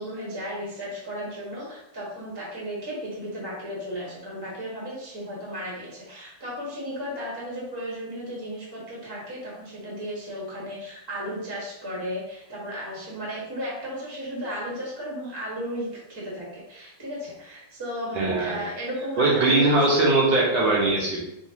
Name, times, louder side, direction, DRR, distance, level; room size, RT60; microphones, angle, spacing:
voice 1, 0.0-20.0, equal, 15° right, -6 dB, 1.1 m, -35 dB
voice 2, 18.1-18.6 19.2-21.2, right 2 dB, 65° right, -4 dB, 1.6 m, -21 dB
5.0 x 2.9 x 2.9 m, 0.87 s
omnidirectional pair, 2.4 m